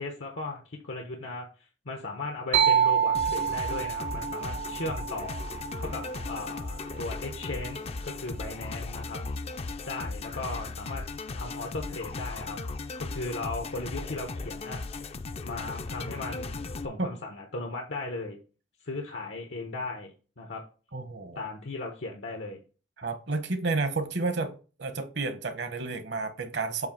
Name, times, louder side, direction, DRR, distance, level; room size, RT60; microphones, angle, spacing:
voice 1, 0.0-1.5 1.8-5.4 5.8-9.2 9.9-11.0 11.3-12.6 13.1-14.8 15.4-18.4 18.8-20.6 21.3-22.6, left 2 dB, 85° left, 1.1 m, -37 dB
sound 1, 2.5-6.2, right 8 dB, 90° right, 1.3 m, -27 dB
sound 2, 3.1-16.9, left 3 dB, 35° left, 0.4 m, -37 dB
voice 2, 20.9-21.4 23.0-24.5 24.8-26.9, right 3 dB, 65° right, 1.1 m, -31 dB
7.9 x 2.7 x 5.9 m
head